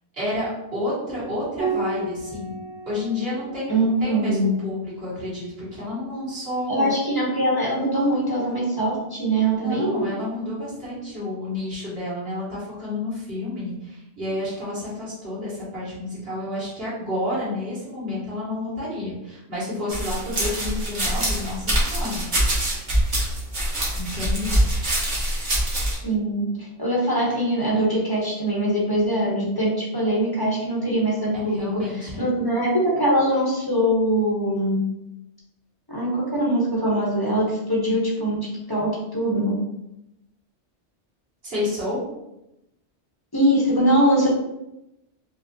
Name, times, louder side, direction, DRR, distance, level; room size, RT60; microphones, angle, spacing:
voice 1, 0.1-2.6 2.9-6.9 9.6-22.2 23.9-24.6 31.5-32.2 41.4-42.0, left 1 dB, 60° right, -10 dB, 2.0 m, -30 dB
Piano, 1.6-6.4 8.1-8.9, right 3 dB, 85° right, 1.3 m, -35 dB
voice 2, 3.7-4.5 6.7-10.1 25.8-34.8 35.9-39.6 43.3-44.3, right 1 dB, 20° left, -5 dB, 0.8 m, -22 dB
sound 1, 19.9-26.0, right 1 dB, 45° right, 1.2 m, -24 dB
4.7 x 2.0 x 2.7 m, 0.89 s
omnidirectional pair, 1.2 m